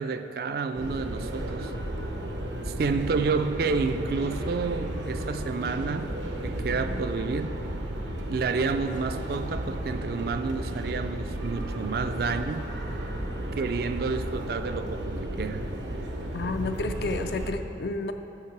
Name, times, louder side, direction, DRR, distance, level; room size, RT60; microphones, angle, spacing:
voice 1, 0.0-1.7 2.7-6.1 6.4-7.6 8.3-12.7 13.5-15.6, right 4 dB, 55° right, 9 dB, 0.3 m, -30 dB
sound 1, 0.7-17.5, right 1 dB, 85° right, 0.9 m, -33 dB
voice 2, 16.3-18.1, left 3 dB, 60° left, 8 dB, 0.4 m, -30 dB
7.1 x 5.5 x 5.9 m, 2.8 s
head